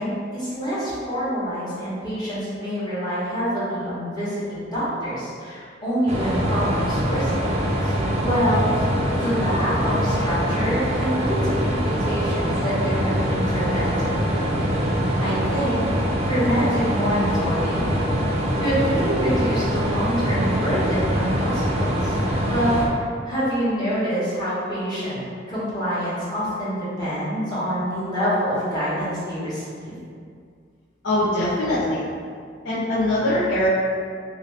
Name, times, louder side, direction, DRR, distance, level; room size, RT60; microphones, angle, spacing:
voice 1, 0.0-7.5 7.8-7.9 8.2-14.1 15.2-15.9 16.2-17.9 18.6-22.2 22.5-30.0, equal, 25° left, -10 dB, 1.0 m, -26 dB
sound 1, 6.1-22.9, equal, 35° right, 0.4 m, -23 dB
voice 2, 31.0-32.1 32.6-33.7, left 1 dB, 85° left, -11 dB, 0.6 m, -22 dB
2.7 x 2.6 x 3.1 m, 2.2 s
head